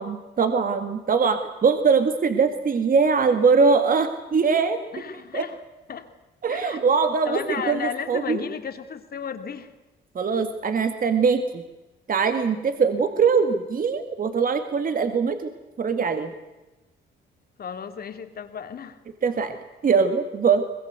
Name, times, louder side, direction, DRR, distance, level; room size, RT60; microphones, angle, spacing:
voice 1, 0.0-4.8 5.3-5.5 6.4-7.8 8.1-8.4 10.1-11.6 12.1-15.5 15.8-16.3 19.2-19.5 19.8-20.6, right 5 dB, 45° right, 8 dB, 2.0 m, -22 dB
voice 2, 4.9-5.6 5.9-6.2 6.5-6.8 7.2-9.7 17.6-19.0, left 7 dB, 50° left, 8 dB, 2.5 m, -33 dB
24.0 x 20.5 x 8.1 m, 1.1 s
cardioid pair, 90°, 20 cm